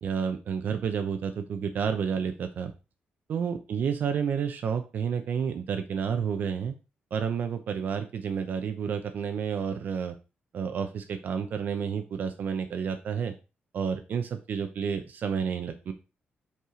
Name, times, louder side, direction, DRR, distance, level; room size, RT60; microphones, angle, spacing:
voice 1, 0.0-2.7 3.3-6.7 7.1-10.2 10.5-13.3 13.7-15.9, right 7 dB, 55° right, 7 dB, 0.6 m, -30 dB
5.5 x 4.8 x 3.7 m, 0.30 s
wide cardioid pair, 160°, 4 cm